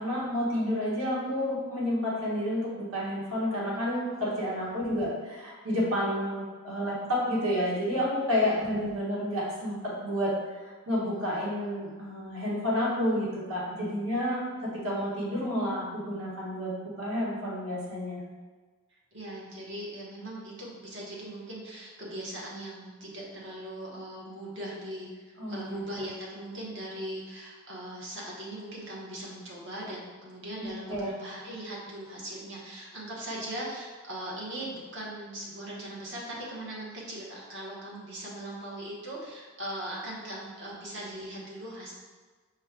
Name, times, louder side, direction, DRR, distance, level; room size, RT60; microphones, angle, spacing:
voice 1, 0.0-10.3 10.6-18.2 25.4-25.8 30.6-31.1, equal, 80° right, -6 dB, 1.5 m, -30 dB
voice 2, 18.9-41.9, right 1 dB, 60° right, -4 dB, 1.0 m, -40 dB
5.0 x 2.2 x 3.7 m, 1.4 s
head